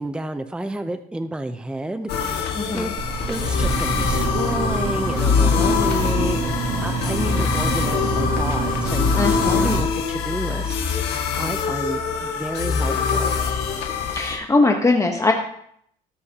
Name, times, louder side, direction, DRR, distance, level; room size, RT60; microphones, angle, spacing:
voice 1, 0.0-2.5 2.7-2.9 3.3-13.4, right 1 dB, 5° right, 9 dB, 0.6 m, -31 dB
sound 1, 2.1-14.4, left 6 dB, 75° left, 2.0 m, -23 dB
voice 2, 2.5-2.9 5.4-5.8 9.1-9.8 14.1-15.3, left 3 dB, 20° left, 2 dB, 1.1 m, -21 dB
sound 2, 3.0-9.8, right 4 dB, 60° right, 2.3 m, -26 dB
18.0 x 6.4 x 2.9 m, 0.69 s
cardioid pair, 110°, 17 cm